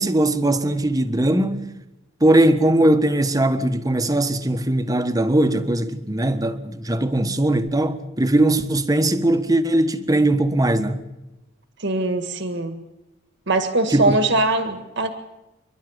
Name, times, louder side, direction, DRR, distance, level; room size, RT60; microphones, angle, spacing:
voice 1, 0.0-1.7 2.2-11.0 13.9-14.2, right 1 dB, 20° right, 1.4 m, -20 dB
voice 2, 11.8-12.8 13.5-15.1, right 2 dB, 60° right, 1.9 m, -21 dB
27.5 x 12.0 x 9.7 m
head